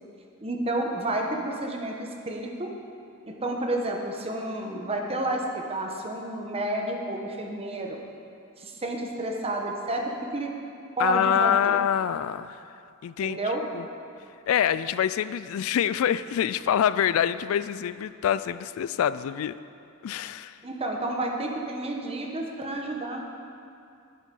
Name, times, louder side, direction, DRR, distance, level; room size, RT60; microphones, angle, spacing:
voice 1, 0.4-2.7 3.3-8.0 8.6-10.5 11.0-11.8 13.2-13.6 20.6-23.2, right 1 dB, 30° right, 1 dB, 1.2 m, -30 dB
voice 2, 11.0-12.6 13.0-13.4 13.7-13.9 14.5-19.6 20.0-20.6, left 9 dB, 70° left, 16 dB, 0.3 m, -25 dB
10.5 x 9.5 x 5.4 m, 2.5 s
head